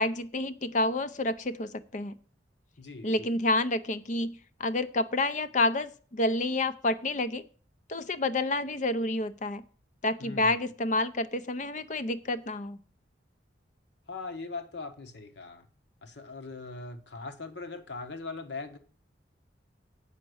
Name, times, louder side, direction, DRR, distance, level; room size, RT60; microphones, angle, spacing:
voice 1, 0.0-2.1 3.0-7.4 7.9-9.6 10.0-12.8, left 2 dB, 45° left, 13 dB, 0.6 m, -29 dB
voice 2, 2.8-3.3 10.2-10.6 14.1-15.7 16.0-18.8, left 3 dB, 70° left, 8 dB, 1.2 m, -40 dB
8.3 x 5.9 x 7.8 m, 0.43 s
head